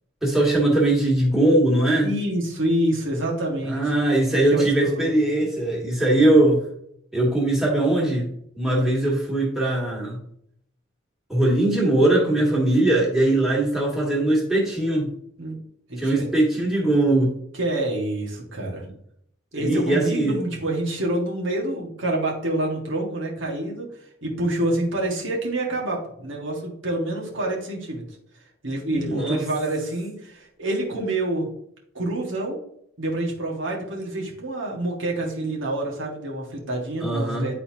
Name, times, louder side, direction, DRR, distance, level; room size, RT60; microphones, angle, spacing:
voice 1, 0.2-2.1 3.6-6.6 7.1-10.2 11.3-15.1 16.0-17.3 19.5-20.4 28.9-29.4 37.0-37.5, right 1 dB, ahead, -4 dB, 1.9 m, -20 dB
voice 2, 2.0-4.0 4.3-5.1 8.7-8.9 15.4-15.6 15.9-16.3 17.5-18.8 19.5-23.9 24.2-28.0 28.6-31.5 31.9-32.6 33.0-37.6, right 1 dB, 75° right, -2 dB, 1.7 m, -27 dB
9.9 x 4.1 x 2.9 m, 0.70 s
head